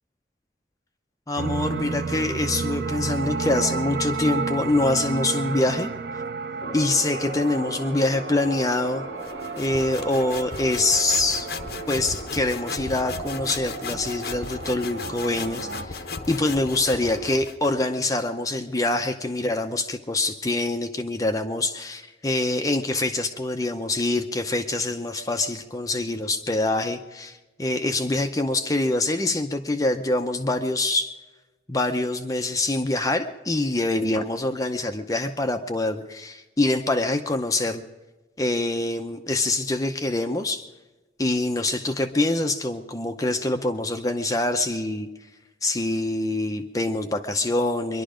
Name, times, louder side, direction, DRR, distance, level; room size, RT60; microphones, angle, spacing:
voice 1, 1.3-5.9 6.7-9.0 9.6-11.5 11.9-31.1 31.7-37.8 38.4-40.7 41.2-45.1 45.6-48.0, left 2 dB, 20° left, 6 dB, 0.6 m, -25 dB
sound 1, 1.4-15.9, right 4 dB, 65° right, 0.6 m, -32 dB
sound 2, 6.6-17.3, left 1 dB, 35° left, 2.1 m, -39 dB
sound 3, 9.2-17.8, left 5 dB, 60° left, 0.8 m, -37 dB
22.5 x 11.5 x 5.0 m, 1.2 s
head